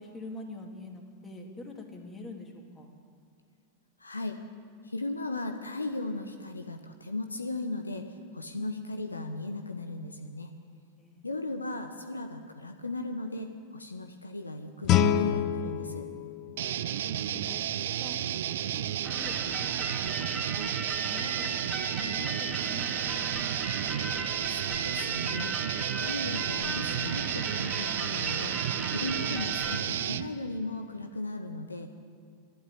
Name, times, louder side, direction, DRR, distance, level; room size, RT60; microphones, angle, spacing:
voice 1, 0.0-2.9 8.6-8.7 11.0-11.5 16.9-17.6 18.0-18.2 18.4-19.7 20.0-20.7 21.0-23.3, left 2 dB, 15° left, 2 dB, 2.4 m, -46 dB
voice 2, 4.0-4.4 4.8-10.5 11.2-16.1 24.4-31.9, left 2 dB, 80° left, 6 dB, 1.0 m, -37 dB
Guitar, 14.8-17.6, left 9 dB, 35° left, 0.7 m, -28 dB
sound 1, 16.6-30.3, right 10 dB, 60° right, 0.5 m, -32 dB
sound 2, 19.0-29.8, right 2 dB, 10° right, 2.2 m, -37 dB
12.0 x 11.5 x 8.8 m, 2.2 s
figure-of-eight pair, 90°, 0 cm